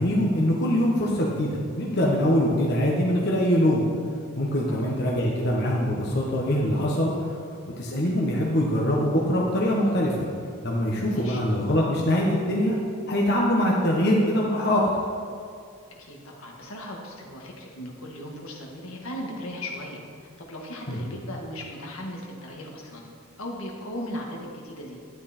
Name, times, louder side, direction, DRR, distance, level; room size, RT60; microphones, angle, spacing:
voice 1, 0.0-3.8 4.4-7.4 7.6-10.2 10.6-12.8 13.1-14.8 20.9-21.0, equal, 50° left, -3 dB, 1.3 m, -23 dB
voice 2, 4.7-5.0 11.1-11.4 16.0-20.0 20.4-23.1 23.4-25.0, left 1 dB, 75° left, -1 dB, 1.9 m, -37 dB
11.5 x 10.0 x 4.4 m, 2.2 s
head